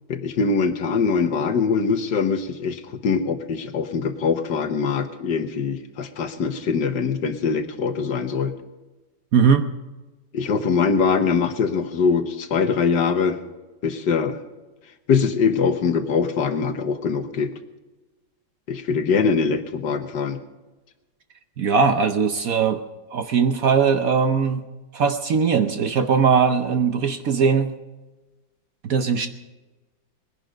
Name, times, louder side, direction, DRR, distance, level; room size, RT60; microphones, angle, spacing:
voice 1, 0.1-8.5 10.3-13.4 13.8-14.4 15.1-17.5 18.7-20.4, left 5 dB, 65° left, 8 dB, 1.7 m, -22 dB
voice 2, 9.3-9.7 21.6-22.8 23.1-24.6 24.9-27.7 28.8-29.3, right 6 dB, 60° right, 8 dB, 1.1 m, -20 dB
20.5 x 10.5 x 5.2 m, 1.2 s
omnidirectional pair, 2.0 m